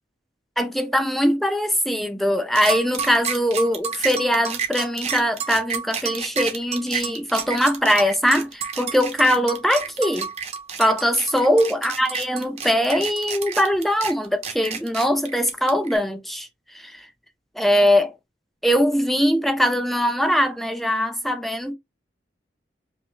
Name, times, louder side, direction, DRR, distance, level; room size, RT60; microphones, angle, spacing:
voice 1, 0.6-10.3 10.8-16.5 16.7-17.1 17.6-18.1 18.6-21.7, equal, ahead, 0.4 m, -21 dB
sound 1, 2.6-16.0, right 6 dB, 40° right, 0.8 m, -30 dB
5.2 x 2.1 x 3.1 m
head